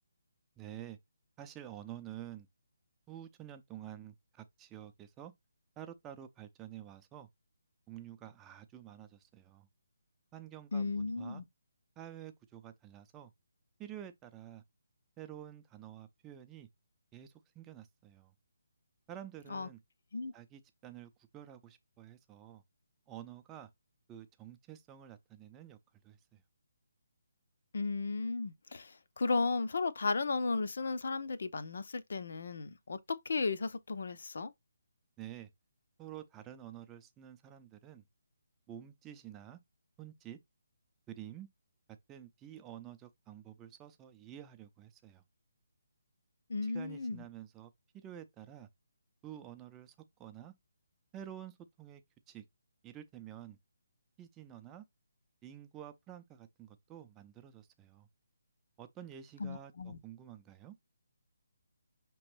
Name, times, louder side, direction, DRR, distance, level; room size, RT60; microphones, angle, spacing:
voice 1, 0.6-1.0 1.4-2.5 3.1-5.3 5.8-7.3 7.9-9.7 10.3-11.4 12.0-13.3 13.8-14.6 15.2-16.7 17.1-18.3 19.1-19.8 20.3-22.6 23.1-23.7 24.1-25.8 26.0-26.4 35.2-35.5 36.0-38.0 38.7-39.6 40.0-40.4 41.1-41.5 42.1-45.2 46.6-48.7 49.2-49.9 50.2-50.5 51.1-52.0 52.3-52.4 52.8-53.6 54.2-54.8 55.4-58.1 58.8-60.8, right 11 dB, 15° right, 0.5 m, -49 dB
voice 2, 10.7-11.4 19.5-19.7 20.1-20.3 27.7-33.0 33.3-34.5 46.5-47.2 59.4-60.0, left 3 dB, 60° left, 0.6 m, -35 dB
5.7 x 3.0 x 3.1 m
figure-of-eight pair, 145°, 0 cm